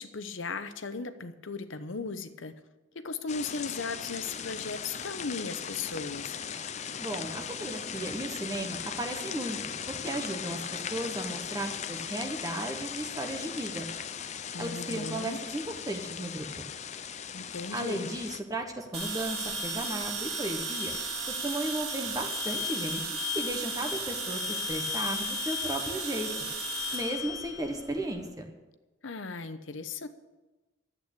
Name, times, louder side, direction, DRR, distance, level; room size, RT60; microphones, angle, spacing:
voice 1, 0.0-2.6 2.9-6.4 14.5-15.4 17.3-18.1 29.0-30.1, left 4 dB, 75° left, 11 dB, 0.9 m, -37 dB
sound 1, 3.3-18.4, left 8 dB, 35° left, 0.5 m, -38 dB
voice 2, 7.0-9.6 9.9-13.9 14.6-16.6 17.7-20.9 21.3-26.3 26.9-28.5, right 1 dB, 20° right, 3 dB, 1.1 m, -35 dB
sound 2, 18.9-28.2, equal, 55° right, 2.5 m, -34 dB
11.5 x 8.6 x 8.3 m, 1.1 s
head